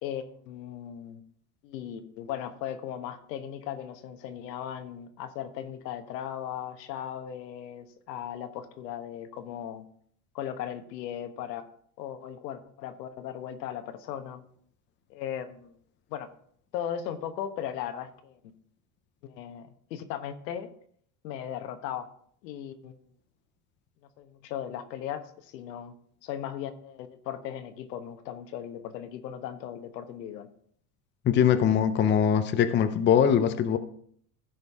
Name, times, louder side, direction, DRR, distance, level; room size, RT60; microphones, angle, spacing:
voice 1, 0.0-1.2 1.6-9.8 10.3-11.7 12.0-14.4 15.1-15.7 16.1-16.3 16.7-18.4 19.2-20.7 21.2-22.1 22.4-22.9 24.2-25.9 26.2-30.5, left 10 dB, 80° left, 8 dB, 1.3 m, -37 dB
voice 2, 31.2-33.8, left 8 dB, 25° left, 9 dB, 0.6 m, -22 dB
15.5 x 5.2 x 3.6 m, 0.62 s
supercardioid pair, 120°, 49 cm